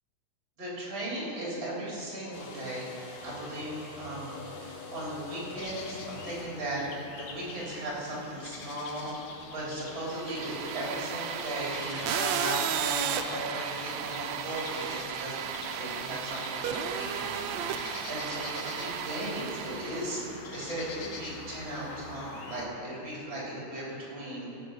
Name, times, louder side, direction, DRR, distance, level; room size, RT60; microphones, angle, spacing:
voice 1, 0.6-6.8 7.2-24.6, right 1 dB, 40° right, -5 dB, 3.9 m, -37 dB
sound 1, 2.3-7.8, left 3 dB, 55° left, 2.3 m, -45 dB
sound 2, 5.6-22.7, left 3 dB, 75° left, 2.6 m, -45 dB
sound 3, 10.1-20.3, right 8 dB, 80° right, 1.7 m, -34 dB
16.5 x 6.6 x 6.4 m, 2.7 s
omnidirectional pair, 3.5 m